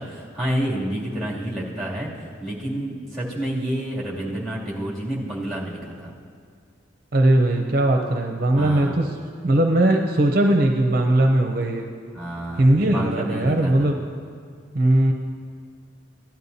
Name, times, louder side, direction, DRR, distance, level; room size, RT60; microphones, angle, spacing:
voice 1, 0.0-2.1 2.4-6.1 8.5-9.0 12.1-13.7, right 1 dB, ahead, -7 dB, 2.5 m, -29 dB
voice 2, 7.1-9.1 9.4-11.9 12.6-14.0 14.7-15.1, right 1 dB, 50° right, 3 dB, 0.6 m, -19 dB
16.5 x 11.5 x 2.7 m, 2.2 s
head